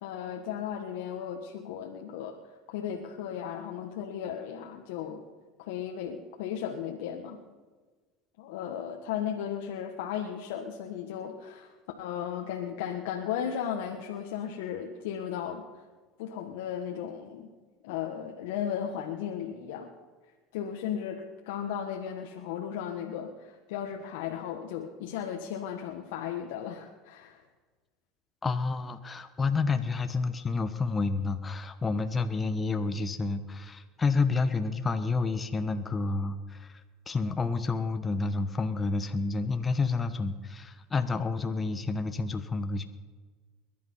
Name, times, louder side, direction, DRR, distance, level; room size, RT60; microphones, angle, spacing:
voice 1, 0.0-2.4 2.7-5.2 5.6-7.4 8.4-15.8 16.2-17.5 17.8-19.9 20.5-27.4, left 9 dB, 80° left, 2 dB, 1.5 m, -35 dB
voice 2, 28.4-36.8 37.1-42.8, left 4 dB, 20° left, 8 dB, 1.1 m, -29 dB
22.0 x 11.5 x 5.6 m, 1.4 s
supercardioid pair, 100°, 0 cm